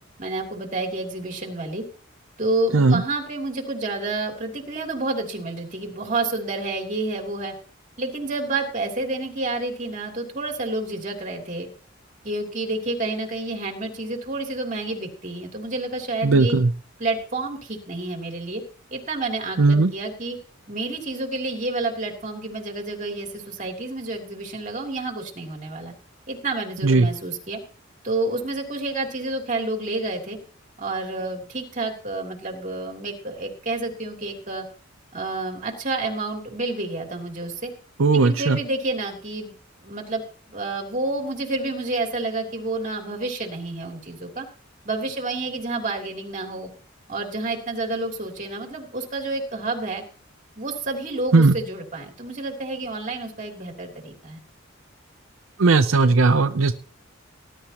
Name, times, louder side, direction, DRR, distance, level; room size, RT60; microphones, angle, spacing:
voice 1, 0.2-1.8 2.4-7.5 8.0-11.7 12.2-16.6 17.0-18.6 18.9-20.4 20.7-25.9 26.3-27.6 28.0-30.4 30.8-34.6 35.1-37.7 38.1-39.5 39.8-40.2 40.5-44.5 44.8-46.7 47.1-50.0 50.6-54.4, right 2 dB, 40° right, 1 dB, 3.1 m, -29 dB
voice 2, 16.2-16.7 19.6-19.9 26.8-27.1 38.0-38.6 51.3-51.5 55.6-56.8, right 3 dB, 85° right, 9 dB, 0.6 m, -17 dB
19.0 x 11.0 x 3.0 m, 0.41 s
head